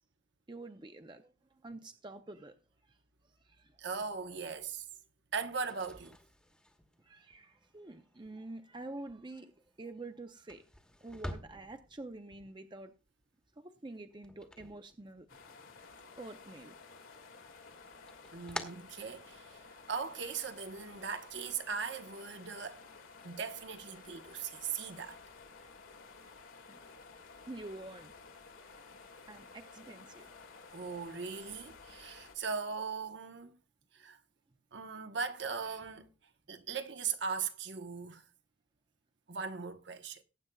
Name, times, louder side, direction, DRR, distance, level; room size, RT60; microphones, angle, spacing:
voice 1, 0.5-2.5 2.9-3.0 3.3-3.8 7.0-10.6 11.0-12.9 13.6-15.3 16.2-16.8 23.9-24.1 26.7-26.8 27.5-28.1 29.3-30.3, right 2 dB, 20° right, 0.5 m, -47 dB
voice 2, 3.8-4.8 5.3-6.2 18.3-19.6 19.9-22.9 23.2-25.2 30.7-33.5 33.9-34.2 34.7-36.1 36.5-38.2 39.3-40.2, right 5 dB, 60° right, 1.0 m, -39 dB
sound 1, 5.6-15.6 15.9-16.7 17.1-19.7, left 1 dB, 5° left, 1.1 m, -49 dB
sound 2, 15.3-32.4, left 4 dB, 80° left, 2.1 m, -54 dB
18.5 x 8.7 x 2.3 m
head